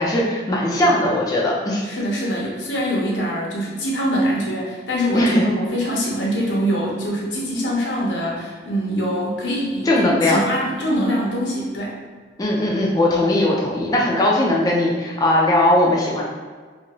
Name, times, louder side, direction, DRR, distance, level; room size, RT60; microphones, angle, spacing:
voice 1, 0.0-1.8 5.1-5.4 9.9-10.4 12.4-16.2, left 1 dB, 20° left, -4 dB, 0.4 m, -19 dB
voice 2, 1.8-11.9, equal, 85° left, -3 dB, 0.8 m, -24 dB
2.6 x 2.6 x 3.0 m, 1.5 s
head